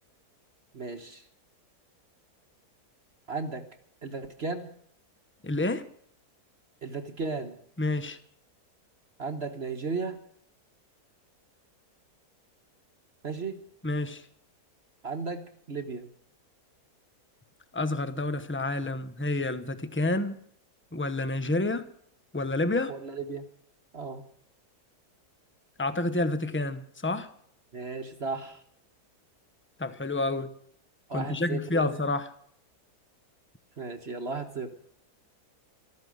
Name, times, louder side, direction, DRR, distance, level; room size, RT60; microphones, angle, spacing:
voice 1, 0.7-1.2 3.3-3.6 4.0-4.7 6.8-7.6 9.2-10.2 13.2-13.6 15.0-16.1 22.9-23.5 23.9-24.2 27.7-28.6 31.1-31.9 33.8-34.7, right 4 dB, 45° right, 7 dB, 1.5 m, -35 dB
voice 2, 5.4-5.8 7.8-8.2 13.8-14.3 17.7-20.4 20.9-21.9 22.3-22.9 25.8-27.3 29.8-30.5 31.1-32.3, left 2 dB, 10° left, 12 dB, 0.8 m, -29 dB
14.5 x 13.5 x 6.4 m, 0.66 s
omnidirectional pair, 1.7 m